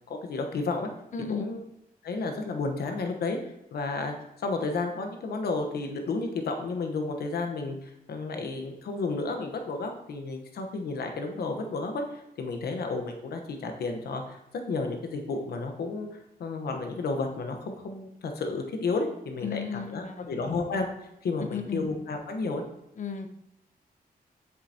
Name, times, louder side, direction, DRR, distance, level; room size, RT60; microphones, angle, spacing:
voice 1, 0.1-0.9 1.3-1.6 2.0-3.4 3.7-4.1 4.4-14.4 14.7-16.1 16.4-20.9 21.2-22.6, left 3 dB, 90° left, 4 dB, 1.1 m, -32 dB
voice 2, 1.1-1.5 19.4-20.6 21.5-21.9 23.0-23.3, left 6 dB, 55° left, 6 dB, 0.8 m, -34 dB
7.8 x 6.8 x 2.8 m, 0.83 s
cardioid pair, 100°, 16 cm